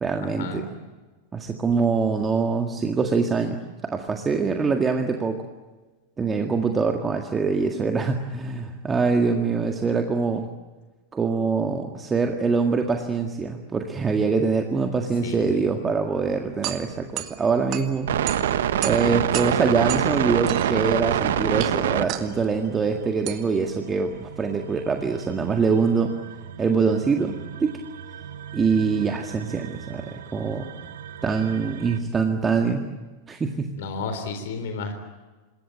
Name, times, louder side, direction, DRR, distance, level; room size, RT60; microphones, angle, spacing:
voice 1, 0.0-0.7 1.3-5.4 6.2-10.5 11.1-18.1 18.8-26.1 26.6-27.7 28.5-30.7 31.2-32.8 33.3-33.7, right 4 dB, 15° right, 4 dB, 1.9 m, -24 dB
voice 2, 15.2-15.6 33.8-34.9, left 4 dB, 55° left, 7 dB, 3.7 m, -32 dB
sound 1, 16.1-25.3, right 13 dB, 40° right, 1.9 m, -36 dB
sound 2, 18.1-22.2 22.7-32.0, right 10 dB, 60° right, 1.4 m, -28 dB
27.5 x 21.0 x 8.8 m, 1.3 s
figure-of-eight pair, 90°, 0 cm